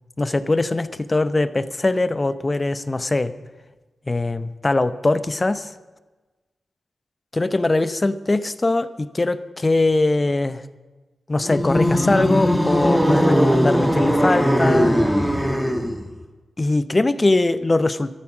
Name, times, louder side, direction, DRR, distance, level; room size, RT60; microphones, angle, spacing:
voice 1, 0.2-3.3 4.1-5.7 7.3-10.6 11.3-15.0 16.6-18.2, left 2 dB, 30° left, 13 dB, 0.8 m, -21 dB
sound 1, 11.4-16.1, equal, 5° right, 1.9 m, -19 dB
13.5 x 13.0 x 6.1 m, 1.2 s
cardioid pair, 65°, 0 cm